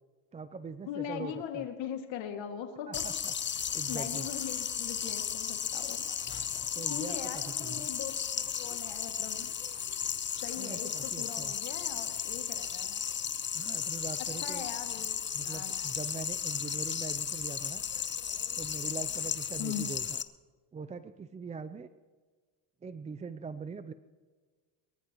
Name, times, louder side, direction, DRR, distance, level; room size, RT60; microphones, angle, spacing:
voice 1, 0.3-1.7 2.9-4.3 6.7-7.9 10.6-11.5 13.5-14.6 15.3-17.8 18.6-20.2 20.7-21.9 22.8-23.9, right 5 dB, 15° right, 12 dB, 0.4 m, -42 dB
voice 2, 0.9-3.1 3.9-6.1 6.9-9.5 10.4-12.9 14.2-15.9 19.6-19.9, left 9 dB, 65° left, 5 dB, 2.3 m, -40 dB
sound 1, 2.9-20.2, left 8 dB, 25° left, 0.7 m, -35 dB
24.0 x 14.0 x 3.0 m, 1.4 s
supercardioid pair, 100°, 49 cm